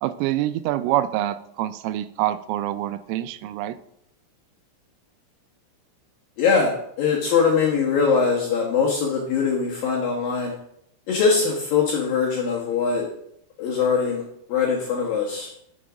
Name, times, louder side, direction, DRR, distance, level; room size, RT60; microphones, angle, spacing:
voice 1, 0.0-3.8, right 13 dB, 85° right, 13 dB, 3.2 m, -26 dB
voice 2, 6.4-10.5 11.1-13.0 13.6-14.2 14.5-15.5, left 5 dB, 65° left, -3 dB, 2.3 m, -22 dB
10.0 x 7.1 x 5.0 m, 0.74 s
omnidirectional pair, 5.8 m